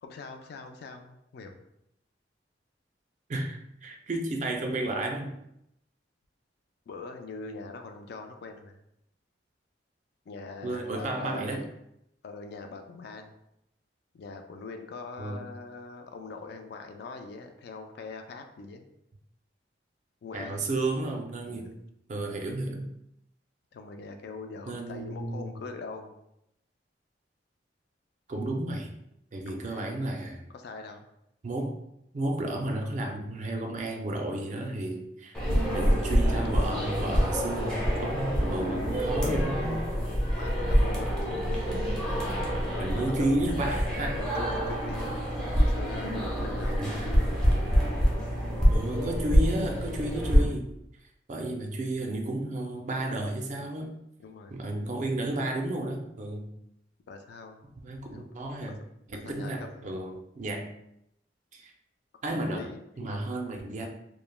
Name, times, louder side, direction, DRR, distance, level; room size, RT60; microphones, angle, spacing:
voice 1, 0.0-1.6 6.9-8.8 10.3-11.7 12.2-13.3 14.1-18.9 20.2-20.6 21.5-21.7 23.7-26.1 29.4-30.0 30.5-31.1 36.4-37.5 39.2-41.1 42.5-43.8 44.2-47.3 54.2-54.5 57.1-57.6 58.1-58.2 58.6-58.8 59.1-59.9 62.3-63.1, left 4 dB, 60° left, 5 dB, 0.3 m, -42 dB
voice 2, 3.3-5.4 10.6-11.6 15.2-15.5 20.3-21.8 22.1-22.9 24.7-25.5 28.3-28.9 29.3-30.4 31.4-31.8 32.1-35.4 35.7-39.8 41.7-41.9 42.8-44.1 46.8-47.0 48.7-50.7 51.3-54.0 54.5-56.5 57.8-58.8 59.2-60.7 61.5-61.7 62.2-62.7 63.0-63.9, right 1 dB, 40° right, 3 dB, 0.4 m, -32 dB
sound 1, 35.3-50.4, equal, 5° left, 0.6 m, -26 dB
3.1 x 2.0 x 2.2 m, 0.80 s
head